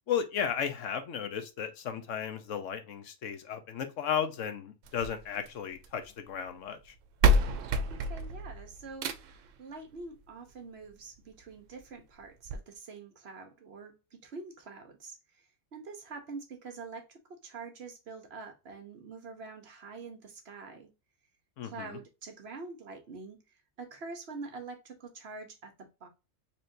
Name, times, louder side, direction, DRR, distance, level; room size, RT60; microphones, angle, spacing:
voice 1, 0.1-6.8 21.6-21.9, left 8 dB, 80° left, 1.1 m, -34 dB
sound 1, 4.8-6.0 6.9-7.0 7.2-9.5 10.8-10.9 11.4-11.5 11.8-11.9 12.5-12.6, right 1 dB, 85° right, 1.0 m, -28 dB
voice 2, 7.9-15.2 15.7-20.9 21.6-23.4 23.8-26.1, right 4 dB, 60° right, 1.1 m, -45 dB
4.3 x 3.2 x 2.6 m
omnidirectional pair, 1.3 m